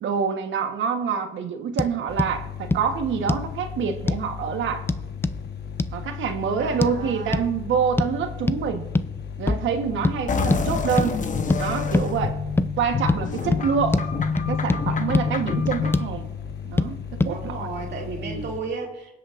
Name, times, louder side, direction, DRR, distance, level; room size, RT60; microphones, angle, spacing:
voice 1, 0.0-4.9 5.9-8.9 9.4-11.2 11.6-12.4 12.8-14.0 14.5-16.3 16.6-17.0 17.2-17.7 18.2-18.5, right 6 dB, 75° right, 7 dB, 1.2 m, -26 dB
sound 1, 1.8-1.9 2.2-2.3 2.7-2.8 3.3-3.5 4.1-4.3 4.9-5.4 5.8-5.9 6.8-6.9 7.3-7.5 8.0-8.2 8.5-8.6 8.9-9.1 9.5-9.7 10.0-10.2 10.5-10.6 11.0-11.1 11.5-11.6 11.9-12.1 12.6-12.7 13.1-13.2 13.5-13.6 13.9-14.1 14.4-14.8 15.1-15.3 15.7-16.1 16.8-16.9 17.2-17.3, left 2 dB, 10° left, 0.4 m, -23 dB
sound 2, 2.1-18.6, left 7 dB, 55° left, 1.3 m, -36 dB
voice 2, 6.6-7.4 13.4-13.7 14.0-14.1 17.3-19.1, right 4 dB, 60° right, 0 dB, 2.5 m, -34 dB
sound 3, 10.3-16.1, left 5 dB, 40° left, 1.0 m, -27 dB
22.0 x 8.3 x 2.5 m, 0.92 s
cardioid pair, 90°, 20 cm